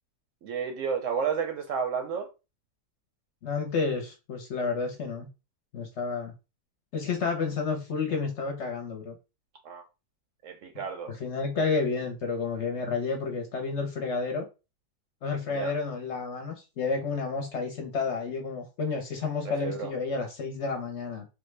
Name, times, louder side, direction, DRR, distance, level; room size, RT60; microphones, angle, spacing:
voice 1, 0.4-2.3 9.6-9.8 10.4-11.1 15.4-15.7 19.4-19.9, right 6 dB, 70° right, 0.8 m, -32 dB
voice 2, 3.4-5.3 5.7-6.3 6.9-9.2 11.1-14.5 15.2-21.3, left 4 dB, 60° left, 0.8 m, -30 dB
3.3 x 2.2 x 3.2 m
omnidirectional pair, 1.6 m